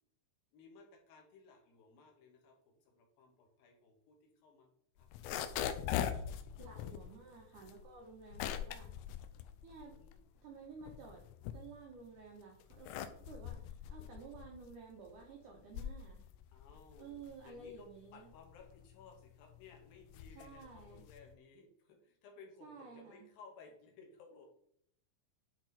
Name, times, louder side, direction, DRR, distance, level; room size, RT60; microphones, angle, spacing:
voice 1, 0.5-5.1 8.3-8.5 9.8-10.2 12.9-13.3 16.5-17.1 17.4-24.5, left 4 dB, 65° left, 1 dB, 2.8 m, -59 dB
sound 1, 5.0-10.3 10.7-12.1 12.6-21.3, left 10 dB, 85° left, 2.8 m, -42 dB
voice 2, 6.6-8.9 9.6-9.9 10.4-11.2 11.5-16.2 17.0-18.3 20.3-21.0 22.6-23.3, right 4 dB, 80° right, 0 dB, 1.8 m, -53 dB
10.5 x 4.2 x 4.1 m, 0.70 s
omnidirectional pair, 5.2 m